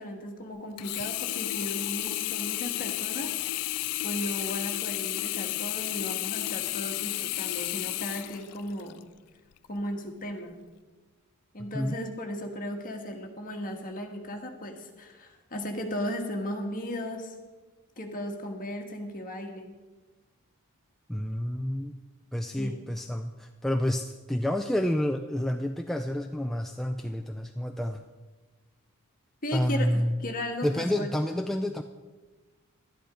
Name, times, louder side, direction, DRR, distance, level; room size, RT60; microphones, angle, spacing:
voice 1, 0.0-3.4 4.0-9.0 9.7-10.6 11.5-17.3 18.0-19.7 22.6-22.8 29.4-31.1, equal, 40° left, 3 dB, 1.5 m, -36 dB
Sink (filling or washing), 0.8-9.0 9.6-9.7, left 17 dB, 85° left, 0.3 m, -32 dB
voice 2, 21.1-22.0 22.3-28.1 29.5-30.2 30.6-31.8, left 1 dB, ahead, 4 dB, 0.3 m, -29 dB
12.0 x 10.5 x 5.0 m, 1.3 s
head